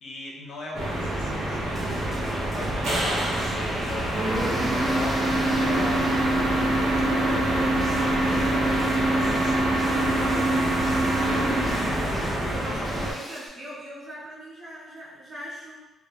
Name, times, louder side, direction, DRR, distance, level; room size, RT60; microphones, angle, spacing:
voice 1, 0.0-6.4 7.1-12.6, left 2 dB, 70° left, -1 dB, 0.5 m, -40 dB
sound 1, 0.7-13.1, right 1 dB, 65° right, 0.7 m, -24 dB
sound 2, 1.7-13.5, left 1 dB, 20° left, 0.6 m, -41 dB
voice 2, 12.0-15.8, equal, 35° right, -7 dB, 1.0 m, -40 dB
2.1 x 2.0 x 2.8 m, 1.0 s
cardioid pair, 90°, 0 cm